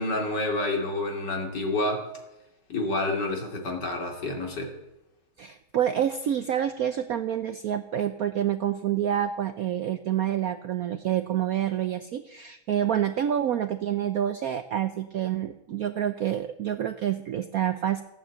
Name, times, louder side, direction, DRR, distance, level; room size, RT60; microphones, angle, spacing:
voice 1, 0.0-2.1 2.7-4.7, left 2 dB, 55° left, 1 dB, 3.2 m, -28 dB
voice 2, 5.4-18.0, right 10 dB, 85° right, 10 dB, 0.7 m, -28 dB
15.0 x 8.8 x 8.0 m, 0.90 s
omnidirectional pair, 2.3 m